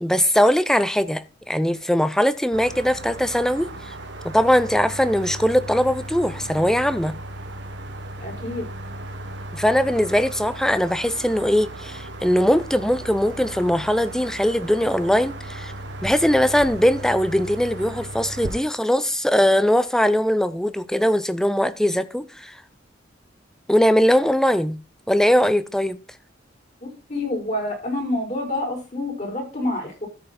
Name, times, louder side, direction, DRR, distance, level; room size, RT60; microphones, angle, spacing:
voice 1, 0.0-3.9 4.2-7.2 9.5-15.7 16.0-22.6 23.7-24.8 25.1-26.0, equal, 5° left, 0.6 m, -20 dB
sound 1, 2.5-18.6, right 1 dB, 65° right, 1.5 m, -36 dB
voice 2, 8.2-8.7 26.8-30.1, left 1 dB, 40° left, 5.3 m, -28 dB
13.5 x 5.6 x 4.2 m
head